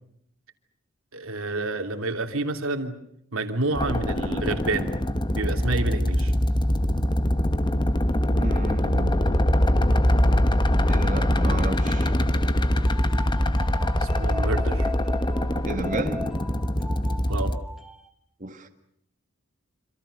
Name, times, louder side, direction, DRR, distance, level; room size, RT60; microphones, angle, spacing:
voice 1, 1.1-2.9 3.3-4.9 5.4-6.3 14.0-14.9 17.3-17.5, right 2 dB, 90° right, 3.0 m, -29 dB
sound 1, 3.7-17.6, left 1 dB, 20° left, 1.1 m, -23 dB
voice 2, 8.4-9.3 10.9-12.1 15.6-16.3 18.4-18.7, right 2 dB, 40° right, 1.9 m, -33 dB
sound 2, 12.7-18.1, left 2 dB, ahead, 1.6 m, -40 dB
27.0 x 26.5 x 6.6 m
head